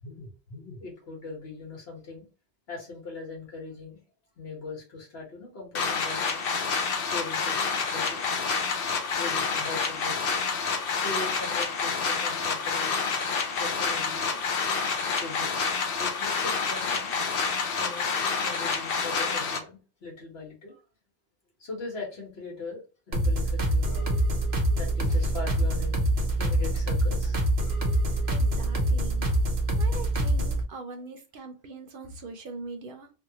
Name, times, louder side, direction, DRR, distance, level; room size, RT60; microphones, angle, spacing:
voice 1, 0.0-2.3 2.7-4.0 4.4-6.4 7.0-8.3 9.1-10.4 10.8-13.0 13.5-14.4 15.2-15.6 16.0-17.1 17.8-18.1 18.4-20.8 21.6-24.2 24.8-27.4, left 3 dB, 85° left, 1.6 m, -40 dB
sound 1, 5.7-19.6, left 5 dB, 65° left, 0.8 m, -28 dB
sound 2, 23.1-30.6, right 1 dB, 85° right, 1.2 m, -25 dB
voice 2, 28.1-29.3 29.8-33.1, right 3 dB, 60° right, 0.8 m, -42 dB
3.4 x 2.3 x 2.8 m
omnidirectional pair, 1.0 m